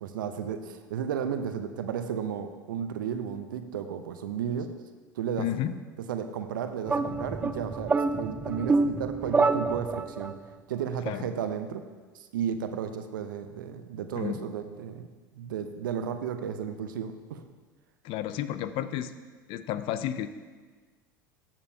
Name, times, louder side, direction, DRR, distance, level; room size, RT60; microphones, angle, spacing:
voice 1, 0.0-4.7 5.2-5.5 6.0-10.3 10.7-11.8 12.1-15.1 15.3-17.4, right 8 dB, 75° right, 9 dB, 0.7 m, -33 dB
voice 2, 5.4-5.8 11.1-11.2 14.1-14.5 18.0-19.1 19.5-20.3, left 11 dB, 50° left, 12 dB, 0.5 m, -31 dB
sound 1, 6.9-10.3, right 3 dB, 15° right, 0.3 m, -27 dB
13.0 x 7.0 x 2.8 m, 1.4 s
hypercardioid pair, 75°, 11 cm